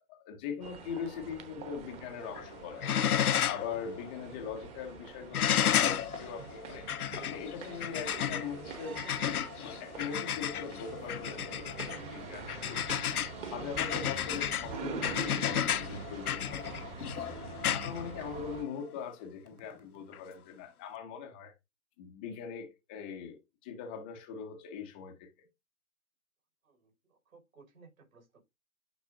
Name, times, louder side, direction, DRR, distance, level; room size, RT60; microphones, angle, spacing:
voice 1, 0.1-3.1 3.5-9.3 9.6-12.9 13.4-17.4 17.7-21.5 22.0-25.3, left 6 dB, 5° left, 0.4 m, -41 dB
sound 1, 0.6-18.6, right 5 dB, 15° right, 0.9 m, -45 dB
sound 2, 2.2-2.5 2.8-3.7 4.1-4.2 5.3-18.7 20.1-20.2, left 9 dB, 80° left, 0.6 m, -32 dB
sound 3, 12.0-20.1, right 3 dB, 85° right, 2.6 m, -62 dB
voice 2, 26.6-28.4, right 4 dB, 65° right, 5.8 m, -59 dB
10.0 x 6.0 x 2.7 m
figure-of-eight pair, 130°, 44 cm